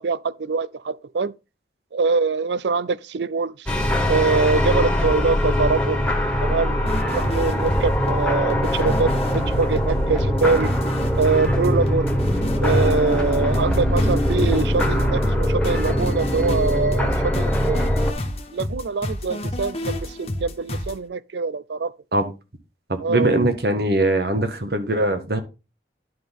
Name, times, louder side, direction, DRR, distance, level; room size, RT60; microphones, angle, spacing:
voice 1, 0.0-1.3 1.9-3.7 4.1-6.0 6.4-10.7 11.2-12.1 12.6-18.0 18.5-21.9 23.0-23.3, right 4 dB, 85° right, 0.5 m, -24 dB
sound 1, 3.7-18.1, equal, 5° left, 1.6 m, -22 dB
sound 2, 6.9-21.0, left 1 dB, 35° left, 1.2 m, -30 dB
voice 2, 22.9-25.4, right 1 dB, 65° right, 1.5 m, -21 dB
11.0 x 5.8 x 3.6 m
head